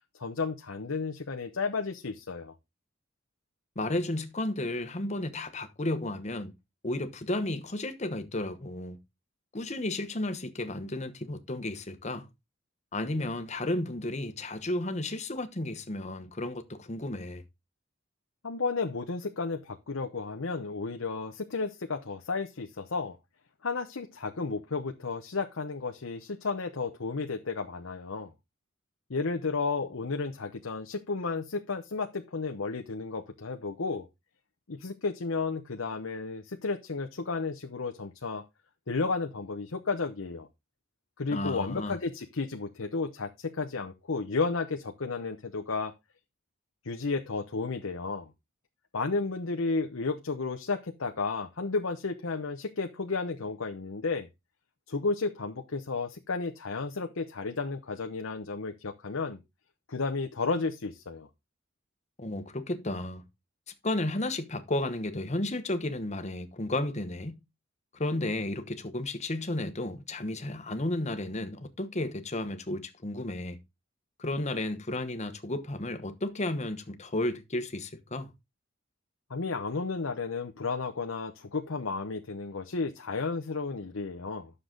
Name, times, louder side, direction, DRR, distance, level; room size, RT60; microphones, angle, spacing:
voice 1, 0.2-2.5 18.4-23.2 23.6-28.3 29.1-34.1 34.7-38.4 38.9-40.5 41.2-45.9 46.8-48.3 48.9-54.3 54.9-59.4 59.9-61.3 79.3-84.5, left 4 dB, 85° left, 0.9 m, -33 dB
voice 2, 3.7-6.5 6.8-9.0 9.5-12.3 12.9-17.4 41.3-42.0 62.2-63.2 63.8-67.4 67.9-73.6 74.2-78.3, left 1 dB, 35° left, 1.1 m, -33 dB
10.0 x 6.7 x 3.8 m
head